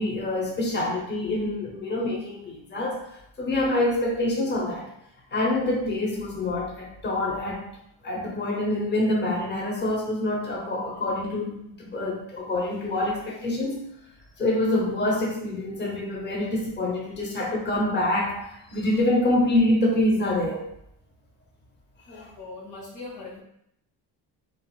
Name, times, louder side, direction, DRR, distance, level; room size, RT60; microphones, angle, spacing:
voice 1, 0.0-3.0 3.4-4.9 5.3-7.7 8.0-13.8 14.4-20.6 22.1-22.3, left 1 dB, 25° left, -3 dB, 0.8 m, -26 dB
voice 2, 22.1-23.4, left 3 dB, 85° left, -2 dB, 1.0 m, -40 dB
3.6 x 2.4 x 2.2 m, 0.76 s
cardioid pair, 135°, 41 cm